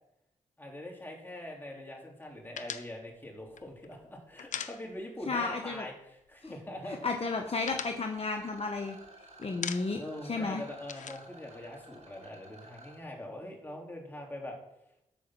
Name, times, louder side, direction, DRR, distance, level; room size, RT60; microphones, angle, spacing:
voice 1, 0.6-7.0 10.0-14.6, left 1 dB, 15° left, -1 dB, 3.7 m, -43 dB
sound 1, 2.6-5.3 5.6-5.8 6.1-6.8 7.1-9.1 9.4-10.2 10.4-12.3, left 7 dB, 70° left, 0.7 m, -42 dB
voice 2, 5.3-5.8 6.4-6.5 7.0-9.0 9.4-10.0 10.3-10.6, left 3 dB, 50° left, 3 dB, 1.1 m, -32 dB
Rattle, 8.1-13.0, right 1 dB, 60° right, 4.6 m, -53 dB
13.0 x 5.0 x 6.0 m, 0.83 s
cardioid pair, 50°, 13 cm